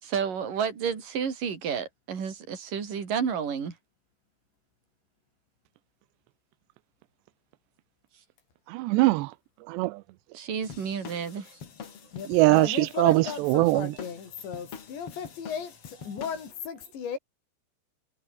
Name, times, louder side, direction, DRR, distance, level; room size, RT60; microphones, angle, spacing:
voice 1, 0.0-3.8 10.3-11.5, right 7 dB, 50° right, 5.7 m, -31 dB
voice 2, 8.7-9.3 9.7-9.9 12.3-13.9, right 21 dB, 85° right, 2.8 m, -22 dB
sound 1, 10.6-16.5, left 7 dB, 40° left, 2.5 m, -45 dB
voice 3, 12.1-17.2, left 7 dB, 80° left, 7.2 m, -36 dB
omnidirectional pair, 5.1 m